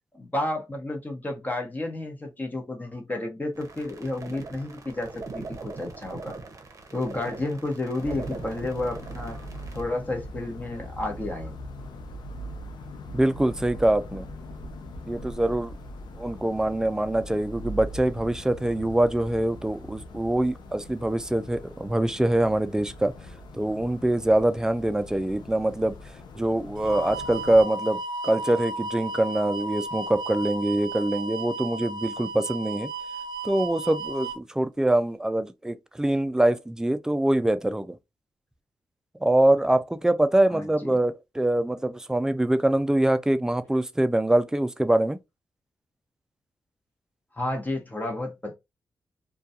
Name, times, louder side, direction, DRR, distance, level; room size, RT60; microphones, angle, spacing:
voice 1, 0.1-6.4 6.9-9.4 9.7-11.6 40.5-40.9 47.3-48.5, left 2 dB, 25° left, 1.0 m, -31 dB
sound 1, 3.5-9.8, right 3 dB, 45° right, 0.7 m, -41 dB
sound 2, 8.0-27.6, equal, 80° left, 0.5 m, -41 dB
voice 2, 13.1-14.3 15.1-15.8 16.2-23.1 23.5-25.9 26.4-32.9 33.4-38.0 39.2-45.2, right 1 dB, 10° right, 0.3 m, -24 dB
sound 3, 26.8-34.4, right 2 dB, 80° right, 0.4 m, -34 dB
2.3 x 2.2 x 2.7 m
cardioid pair, 65°, 7 cm